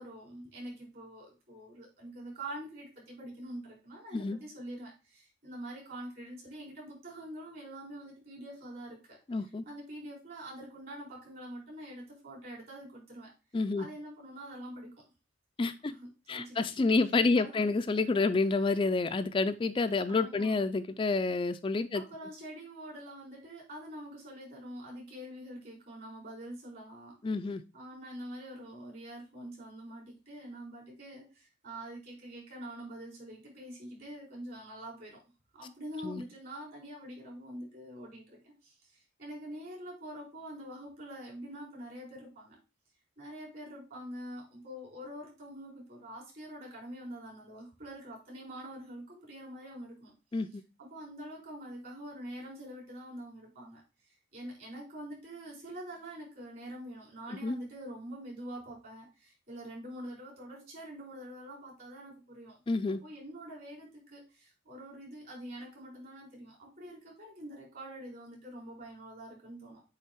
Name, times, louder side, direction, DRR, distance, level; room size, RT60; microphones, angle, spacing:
voice 1, 0.0-13.3 13.8-14.9 15.9-16.6 17.3-17.7 20.1-20.6 21.9-27.2 27.7-35.2 35.5-42.6 43.2-50.1 50.8-62.6 63.0-69.8, right 1 dB, 50° right, -3 dB, 4.4 m, -45 dB
voice 2, 9.3-9.6 13.5-13.9 15.6-15.9 16.3-22.0 27.2-27.6 36.0-36.2 50.3-50.5 57.4-57.6 62.7-63.0, left 3 dB, 25° left, 10 dB, 0.3 m, -29 dB
8.0 x 3.4 x 4.4 m, 0.30 s
head